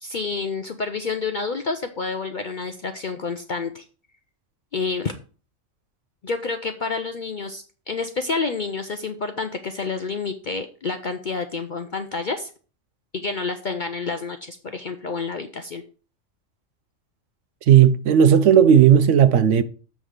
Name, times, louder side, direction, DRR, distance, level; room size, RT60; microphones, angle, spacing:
voice 1, 0.0-3.8 4.7-5.1 6.2-12.5 13.1-15.8, left 4 dB, 55° left, 0.5 m, -29 dB
voice 2, 17.7-19.6, right 9 dB, 70° right, 0.8 m, -14 dB
7.4 x 3.5 x 6.4 m
omnidirectional pair, 1.4 m